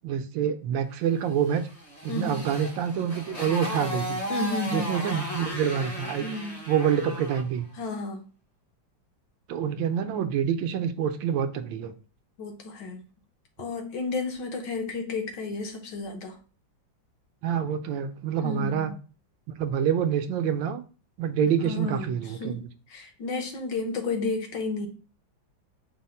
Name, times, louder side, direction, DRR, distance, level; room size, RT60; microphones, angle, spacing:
voice 1, 0.0-1.6 2.0-4.2 4.7-6.3 6.7-7.7 9.5-11.9 17.4-18.9 19.5-20.8 21.2-22.6, right 8 dB, 80° right, 9 dB, 1.3 m, -27 dB
Motorcycle, 1.5-7.5, equal, 45° left, 0.5 m, -35 dB
voice 2, 2.1-2.4 4.3-4.9 6.2-6.6 7.8-8.2 12.4-13.0 13.6-16.4 18.4-18.9 21.6-22.1 22.4-22.6 22.9-24.9, left 3 dB, 70° left, 4 dB, 1.5 m, -32 dB
5.3 x 2.1 x 4.1 m, 0.37 s
omnidirectional pair, 2.1 m